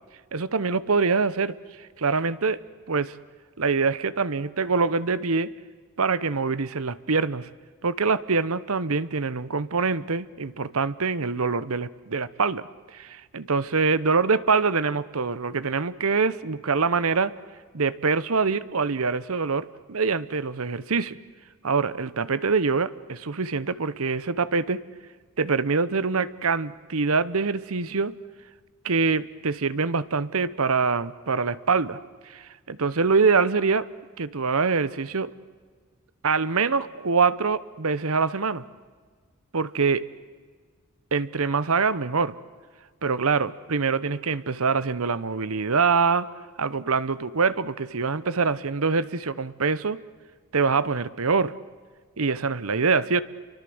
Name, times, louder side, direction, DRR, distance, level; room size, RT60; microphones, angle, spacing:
voice 1, 0.3-1.6 2.0-2.6 2.9-3.1 3.6-5.5 6.0-7.5 7.8-12.6 12.9-17.3 17.7-21.2 21.6-24.8 25.4-28.2 28.8-32.0 32.3-33.9 34.2-35.3 36.2-38.6 39.5-40.0 41.1-42.3 43.0-46.3 46.6-50.0 50.5-51.5 52.2-53.2, right 4 dB, 75° right, 16 dB, 0.9 m, -24 dB
29.0 x 24.0 x 7.9 m, 1.6 s
head